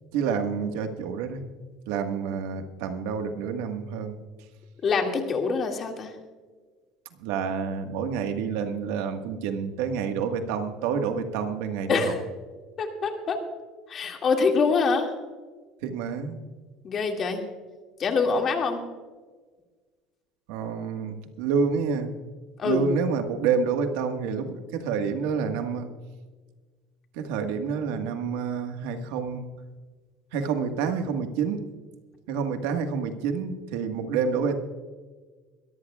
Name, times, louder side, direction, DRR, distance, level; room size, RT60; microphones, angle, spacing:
voice 1, 0.1-1.4 1.9-4.2 7.2-12.1 15.8-16.4 20.5-22.1 22.6-25.9 27.1-29.5 30.3-31.6 32.3-34.5, right 6 dB, 85° right, 6 dB, 1.5 m, -28 dB
voice 2, 4.8-6.1 11.9-12.2 12.8-13.4 13.9-15.1 16.8-17.4 18.0-18.8 22.6-22.9, left 4 dB, 35° left, 3 dB, 2.2 m, -25 dB
23.0 x 14.0 x 2.4 m, 1.4 s
cardioid pair, 135°, 0 cm